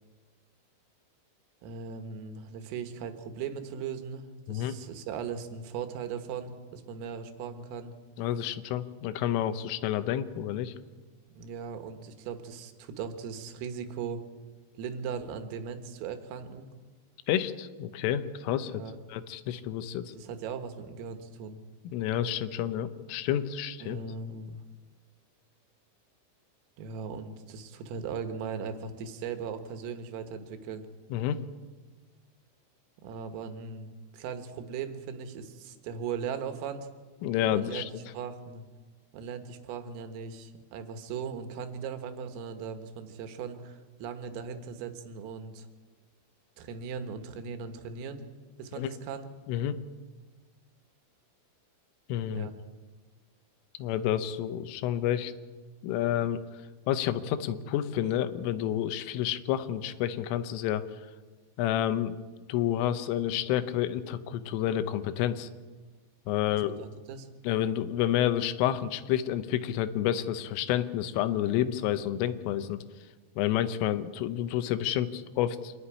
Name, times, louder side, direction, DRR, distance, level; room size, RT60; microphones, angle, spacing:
voice 1, 1.6-7.9 11.3-14.2 14.8-16.7 18.7-19.0 20.2-21.6 23.8-24.6 26.8-30.9 33.0-36.9 37.5-37.9 38.1-38.6 39.1-45.7 46.6-48.2 48.6-49.3 52.3-52.5 66.5-67.3, right 6 dB, 85° right, 8 dB, 4.1 m, -38 dB
voice 2, 8.2-10.7 17.3-18.8 19.1-20.1 21.9-24.0 31.1-31.4 37.2-37.9 48.8-48.9 49.5-49.8 52.1-52.5 53.8-55.3 55.8-56.4 56.9-60.9 61.6-62.2 62.5-65.5 66.3-66.8 67.5-72.8 73.4-75.7, left 11 dB, 80° left, 11 dB, 3.5 m, -29 dB
25.5 x 12.0 x 9.8 m, 1.4 s
omnidirectional pair, 5.8 m